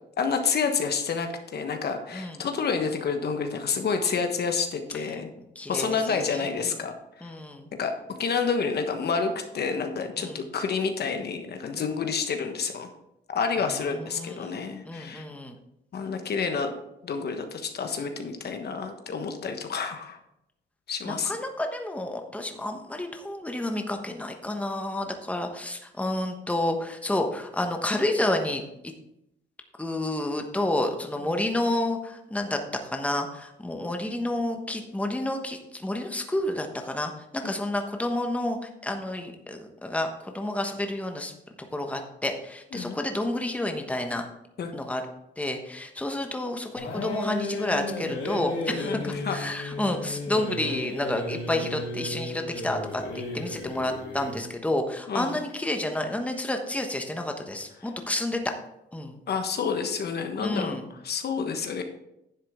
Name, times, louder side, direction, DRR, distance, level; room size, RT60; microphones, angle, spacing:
voice 1, 0.2-5.3 5.7-7.3 7.8-12.9 13.3-15.3 15.9-16.7 17.0-20.2 20.9-21.3 31.3-31.4 37.4-37.6 42.7-43.0 44.6-44.7 48.8-49.5 55.1-55.3 59.3-61.8, left 5 dB, 55° left, 6 dB, 1.3 m, -29 dB
voice 2, 5.5-6.7 7.2-7.7 10.2-10.4 13.6-14.6 14.8-15.6 21.0-28.9 29.8-38.6 38.8-41.3 41.7-44.3 44.7-45.0 45.4-58.4 58.9-59.2 60.4-60.9, left 1 dB, 5° left, 4 dB, 1.2 m, -30 dB
sound 1, 46.8-54.4, left 2 dB, 75° left, 3.1 m, -34 dB
10.5 x 7.5 x 3.7 m, 0.83 s
cardioid pair, 90°, 20 cm